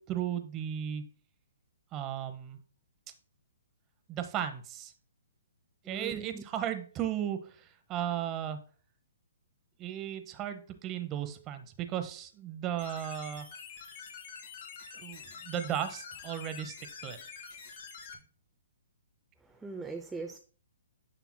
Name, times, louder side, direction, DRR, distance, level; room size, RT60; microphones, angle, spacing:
voice 1, 0.1-1.0 1.9-2.6 4.1-4.9 5.9-8.6 9.8-13.5 14.9-16.7 17.0-17.2, right 10 dB, 25° right, 8 dB, 0.9 m, -35 dB
voice 2, 5.8-6.4 19.5-20.4, right 4 dB, 5° right, 4 dB, 0.5 m, -40 dB
sound 1, 12.8-18.1, left 6 dB, 50° left, 2.1 m, -46 dB
9.3 x 5.8 x 2.2 m, 0.41 s
hypercardioid pair, 140°, 0 cm